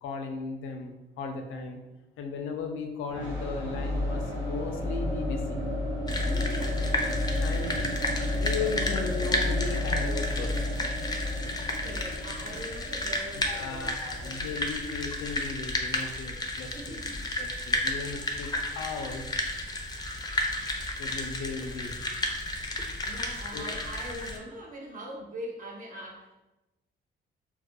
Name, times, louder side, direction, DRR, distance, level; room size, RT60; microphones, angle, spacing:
voice 1, 0.0-1.8 2.2-5.6 7.4-7.8 8.4-10.6 13.5-17.0 17.4-19.2 21.0-21.9 23.5-23.7, left 4 dB, 85° left, 5 dB, 0.4 m, -36 dB
sound 1, 3.1-14.9, left 1 dB, 85° right, 0.7 m, -31 dB
sound 2, 6.1-24.4, left 1 dB, 20° left, 0.4 m, -33 dB
voice 2, 6.2-7.1 11.8-14.5 16.7-17.2 23.0-26.4, right 1 dB, 45° right, -1 dB, 0.5 m, -42 dB
2.3 x 2.1 x 2.7 m, 1.0 s
cardioid pair, 90°, 20 cm